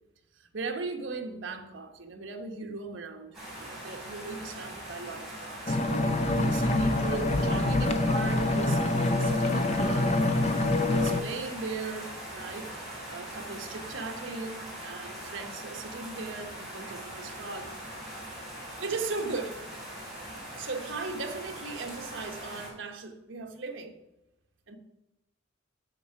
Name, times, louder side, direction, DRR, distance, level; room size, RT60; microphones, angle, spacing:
voice 1, 0.3-5.8 6.4-10.2 10.9-17.7 18.7-19.6 20.5-24.0 24.7-24.8, right 3 dB, 75° right, 5 dB, 1.0 m, -38 dB
sound 1, 3.3-22.7, right 1 dB, ahead, 3.5 m, -41 dB
sound 2, 5.7-11.2, left 2 dB, 35° left, 0.6 m, -25 dB
7.1 x 6.8 x 5.8 m, 0.96 s
head